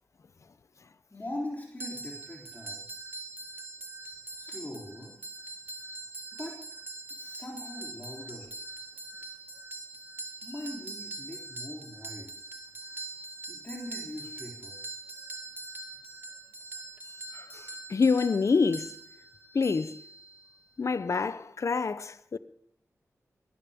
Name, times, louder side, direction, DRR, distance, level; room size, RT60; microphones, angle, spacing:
voice 1, 1.1-2.8 4.3-5.1 6.4-6.6 7.1-8.5 10.4-12.4 13.5-14.8, left 1 dB, 30° left, 3.6 m, -41 dB
sound 1, 1.8-20.6, right 2 dB, 35° right, 2.2 m, -43 dB
voice 2, 17.3-17.6 17.9-18.9 19.5-20.0 20.8-22.4, left 4 dB, 60° left, 0.7 m, -27 dB
21.0 x 14.0 x 3.7 m
wide cardioid pair, 75°, 6 cm